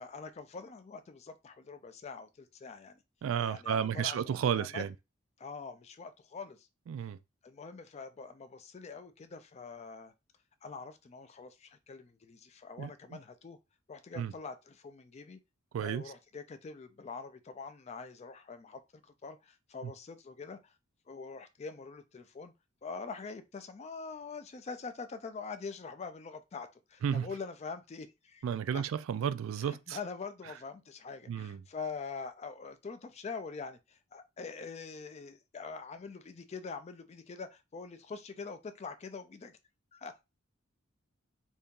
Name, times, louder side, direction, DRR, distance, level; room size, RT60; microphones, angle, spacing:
voice 1, 0.0-3.0 3.4-4.9 5.4-6.7 7.4-10.1 10.6-13.6 13.9-15.4 15.8-20.7 21.1-22.5 22.8-28.5 28.7-28.8 29.6-39.6 39.9-40.4, left 4 dB, 30° left, 0.3 m, -44 dB
voice 2, 3.2-4.9 6.9-7.2 12.8-13.2 14.2-14.3 15.7-16.0 19.8-19.9 27.0-27.3 28.4-30.0 31.3-31.6, right 8 dB, 70° right, 0.3 m, -32 dB
2.8 x 2.6 x 3.5 m
head